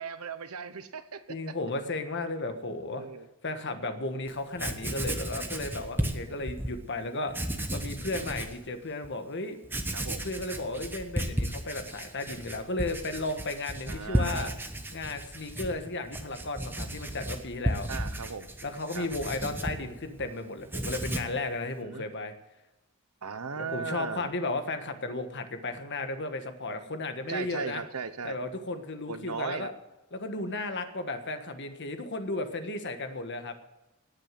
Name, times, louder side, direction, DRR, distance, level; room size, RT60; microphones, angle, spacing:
voice 1, 0.0-1.5 2.9-3.3 9.9-10.3 13.9-14.6 17.9-18.5 18.9-19.1 21.8-22.0 23.2-24.3 27.3-28.4 29.1-29.7, right 5 dB, 85° right, 12 dB, 1.0 m, -37 dB
voice 2, 1.3-3.1 3.4-9.6 10.2-14.5 14.9-17.9 18.6-22.3 23.6-27.8 28.2-29.7 30.1-33.5, left 2 dB, 55° left, 7 dB, 1.5 m, -34 dB
Writing, 4.3-4.4 4.6-6.7 7.3-8.6 9.0-9.1 9.6-20.3 20.6-21.4, right 1 dB, 10° right, 1.1 m, -34 dB
18.5 x 6.6 x 7.6 m, 1.0 s
head